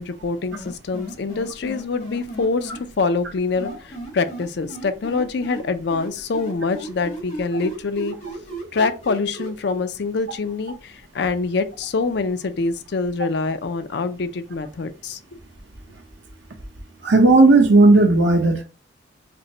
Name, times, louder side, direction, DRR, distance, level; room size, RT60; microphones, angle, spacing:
voice 1, 0.0-8.2 8.7-15.2, left 4 dB, 60° left, 0.4 m, -25 dB
sound 1, 0.5-2.8 3.6-5.6 5.9-9.5, right 1 dB, 40° left, 1.7 m, -34 dB
voice 2, 17.0-18.6, right 2 dB, 70° right, 0.9 m, -13 dB
5.1 x 2.1 x 2.9 m
head